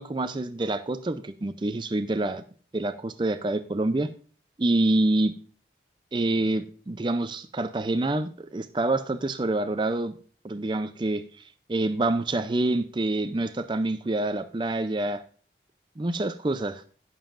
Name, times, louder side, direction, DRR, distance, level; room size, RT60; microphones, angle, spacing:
voice 1, 0.0-2.4 2.7-4.1 4.6-5.3 6.1-10.1 10.4-11.2 11.7-15.2 16.0-16.8, right 2 dB, 25° right, 10 dB, 0.4 m, -26 dB
18.0 x 7.2 x 2.5 m, 0.42 s
head